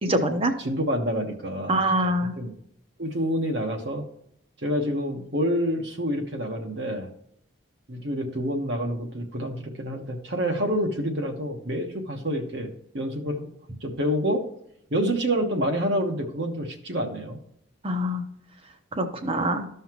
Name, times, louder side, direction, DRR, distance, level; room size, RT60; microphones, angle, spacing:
voice 1, 0.0-0.5 1.7-2.4 17.8-18.2 18.9-19.7, right 1 dB, 30° right, 6 dB, 0.9 m, -24 dB
voice 2, 0.6-2.5 3.0-4.0 4.6-7.1 7.9-13.5 13.8-14.4 14.9-17.4, equal, 60° right, 3 dB, 1.2 m, -28 dB
13.5 x 5.6 x 3.0 m, 0.71 s
head